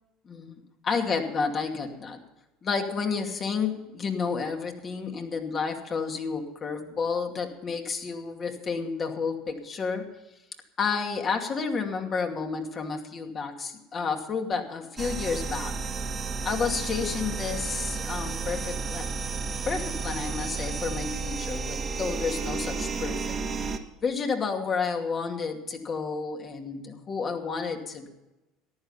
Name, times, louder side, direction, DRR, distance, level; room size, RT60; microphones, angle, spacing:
voice 1, 0.3-2.2 2.6-10.1 10.8-15.8 16.4-19.1 19.7-23.4 24.0-28.1, left 5 dB, 35° left, 4 dB, 2.4 m, -31 dB
sound 1, 15.0-23.8, right 5 dB, 30° right, 1.6 m, -32 dB
14.5 x 11.0 x 5.6 m, 0.99 s
hypercardioid pair, 85°, 0 cm